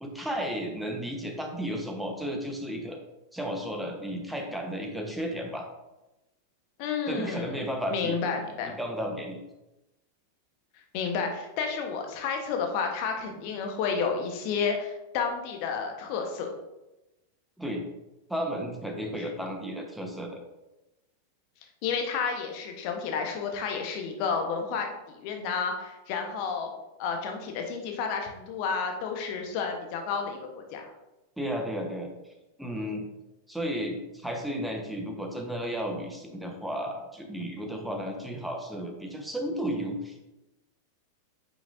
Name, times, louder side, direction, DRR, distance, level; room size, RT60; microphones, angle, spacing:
voice 1, 0.0-3.0 3.3-5.6 7.1-8.2 8.8-9.4 17.6-17.8 18.3-20.4 31.4-32.1 32.6-33.0 33.5-40.3, equal, ahead, 2 dB, 1.3 m, -33 dB
voice 2, 6.8-7.7 7.9-8.7 10.9-16.5 21.8-26.7 27.0-30.9, left 5 dB, 45° left, 3 dB, 1.3 m, -31 dB
9.0 x 6.4 x 2.8 m, 1.0 s
figure-of-eight pair, 90°, 0 cm